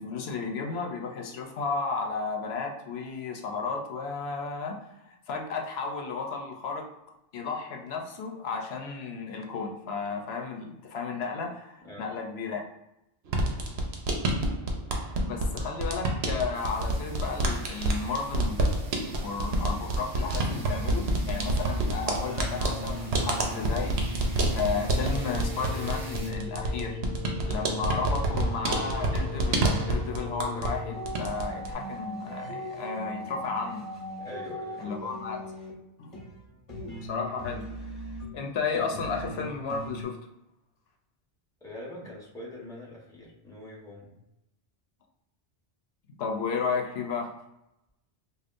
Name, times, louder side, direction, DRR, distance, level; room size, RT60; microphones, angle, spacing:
voice 1, 0.0-6.9 7.3-12.6 15.3-18.7 19.2-24.0 24.5-27.0 27.4-33.8 34.8-35.4 36.0-36.1 37.0-37.9 38.3-40.2 46.2-47.3, left 4 dB, 80° left, 2 dB, 0.9 m, -33 dB
sound 1, 13.3-30.8 31.0-31.7, right 1 dB, 80° right, 0.9 m, -28 dB
sound 2, 16.5-26.3, right 2 dB, 55° right, 0.8 m, -49 dB
sound 3, 20.5-40.0, left 1 dB, 35° left, 1.0 m, -39 dB
voice 2, 34.2-35.1 41.6-44.1, left 1 dB, 5° left, -4 dB, 1.0 m, -43 dB
5.0 x 2.4 x 2.5 m, 0.87 s
omnidirectional pair, 1.0 m